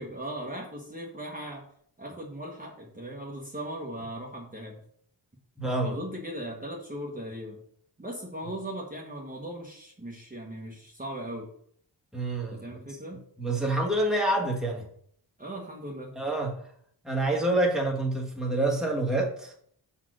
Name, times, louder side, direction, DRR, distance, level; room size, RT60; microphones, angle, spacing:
voice 1, 0.0-1.7 2.0-4.8 5.8-7.6 8.0-11.5 12.5-13.3 15.4-16.1, right 1 dB, 20° right, -1 dB, 1.3 m, -38 dB
voice 2, 5.6-6.0 12.1-12.6 13.4-14.9 16.2-16.5 17.0-19.5, right 2 dB, ahead, 0 dB, 1.4 m, -27 dB
6.2 x 4.3 x 6.2 m, 0.63 s
wide cardioid pair, 135°, 45 cm